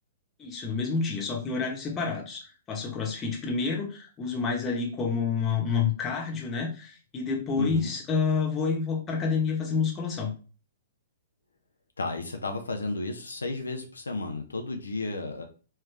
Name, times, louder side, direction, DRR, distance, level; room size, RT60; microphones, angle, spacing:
voice 1, 0.4-2.4 2.7-10.3, left 5 dB, 20° left, -1 dB, 1.2 m, -28 dB
voice 2, 7.6-7.9 12.0-15.4, left 2 dB, 90° left, 4 dB, 0.6 m, -32 dB
3.4 x 3.2 x 3.3 m, 0.36 s
hypercardioid pair, 120°, 0 cm